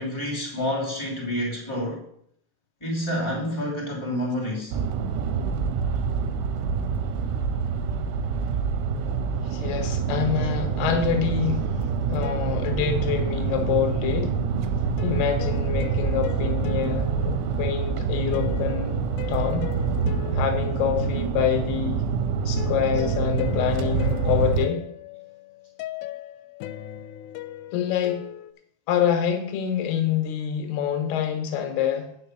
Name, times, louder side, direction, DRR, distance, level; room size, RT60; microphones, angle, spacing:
voice 1, 0.0-2.0 2.8-4.7 22.9-23.0, equal, 10° left, -3 dB, 1.6 m, -28 dB
sound 1, 4.7-24.7, right 5 dB, 80° right, 3.0 m, -26 dB
voice 2, 9.4-11.7 12.1-14.3 15.0-19.0 19.3-19.7 20.3-22.0 22.5-24.8 27.7-28.2 28.9-32.1, left 9 dB, 65° left, 5 dB, 2.9 m, -26 dB
sound 2, 10.4-11.4 12.2-14.1 15.0-21.7 22.6-28.5, left 12 dB, 85° left, 3.2 m, -39 dB
8.8 x 6.5 x 6.3 m, 0.68 s
omnidirectional pair, 5.7 m